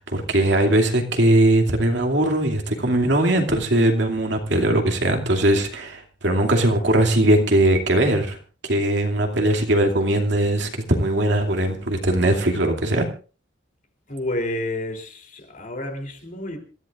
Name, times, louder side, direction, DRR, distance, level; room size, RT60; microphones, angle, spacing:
voice 1, 0.0-8.4 8.7-13.1, right 1 dB, 65° right, 2.7 m, -20 dB
voice 2, 14.1-16.6, left 1 dB, 45° left, 3.4 m, -30 dB
26.5 x 14.5 x 2.5 m
head